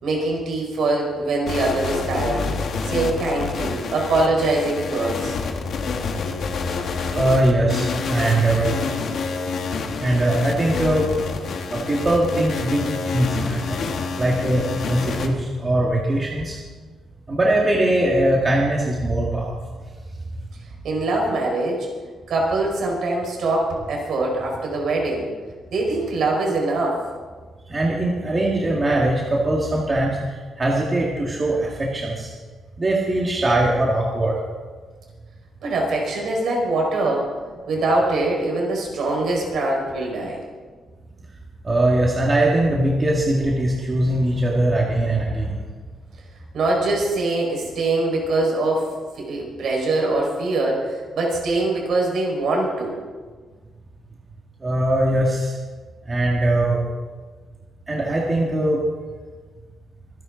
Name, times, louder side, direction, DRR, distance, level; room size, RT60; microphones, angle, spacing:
voice 1, 0.0-2.5 2.8-5.3 20.8-21.9 22.3-25.2 25.7-27.0 35.6-37.3 37.7-40.4 46.5-48.9 49.2-53.0, right 2 dB, 60° right, -1 dB, 5.0 m, -23 dB
sound 1, 1.5-15.3, left 4 dB, 55° left, 1.5 m, -28 dB
voice 2, 7.1-8.7 10.0-11.1 11.7-13.8 14.2-16.6 17.3-19.6 27.7-30.2 30.6-32.3 32.8-34.4 41.6-45.6 54.6-55.6 56.1-56.8 57.9-58.8, right 1 dB, 20° right, -3 dB, 1.8 m, -21 dB
25.0 x 11.0 x 3.9 m, 1.4 s
cardioid pair, 175°, 0 cm